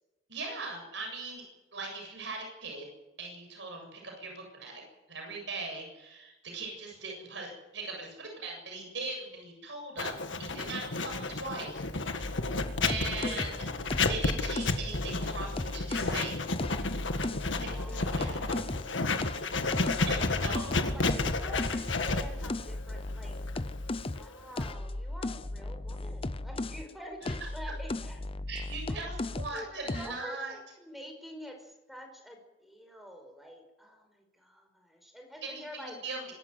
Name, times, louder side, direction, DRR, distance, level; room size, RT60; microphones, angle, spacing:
voice 1, 0.3-1.5 1.7-2.9 3.2-4.8 5.1-11.8 12.1-12.3 12.7-13.6 13.9-16.4 17.6-18.4 20.1-20.8 28.5-30.5 35.4-36.3, right 3 dB, 70° right, 1 dB, 7.5 m, -40 dB
Writing, 10.0-24.7, left 3 dB, 90° left, 1.8 m, -32 dB
sound 1, 12.2-16.2 16.6-18.9 19.2-26.9 27.2-29.6 29.9-30.2, left 2 dB, 30° left, 0.7 m, -36 dB
voice 2, 13.2-13.5 17.7-18.6 20.5-23.4 24.2-28.2 28.9-36.0, equal, ahead, 4 dB, 5.2 m, -47 dB
24.5 x 13.0 x 9.4 m, 0.98 s
head